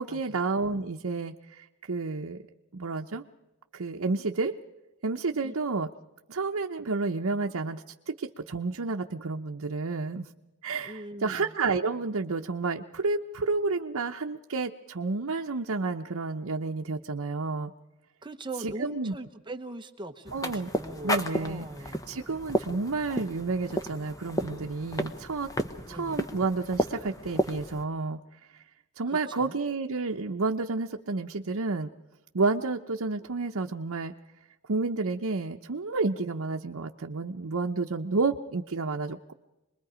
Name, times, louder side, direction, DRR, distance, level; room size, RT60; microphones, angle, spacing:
voice 1, 0.0-2.4 2.7-3.2 3.7-4.6 5.0-5.9 6.3-10.3 10.6-17.7 18.6-19.1 20.3-20.7 21.0-21.7 22.1-25.5 25.9-28.2 28.5-28.6 29.0-31.9 32.3-34.1 34.7-39.3, right 3 dB, 80° right, 2 dB, 0.8 m, -30 dB
voice 2, 10.8-11.5 18.2-22.0 25.8-26.2 29.1-29.6, right 2 dB, 20° right, 7 dB, 1.0 m, -41 dB
sound 1, 20.3-27.8, equal, 15° left, 1.0 m, -33 dB
26.5 x 21.0 x 5.0 m, 1.0 s
head